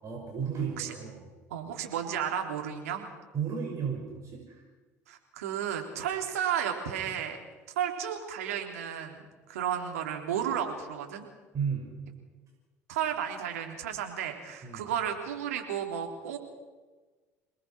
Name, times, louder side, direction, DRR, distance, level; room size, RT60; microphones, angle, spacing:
voice 1, 0.0-1.3 3.3-4.6 11.5-12.0 14.6-14.9, right 6 dB, 40° right, 0 dB, 6.2 m, -34 dB
voice 2, 1.5-3.1 5.1-7.4 7.8-11.3 12.9-16.4, right 9 dB, 75° right, 3 dB, 3.5 m, -33 dB
27.5 x 19.0 x 6.0 m, 1.3 s
hypercardioid pair, 65°, 8 cm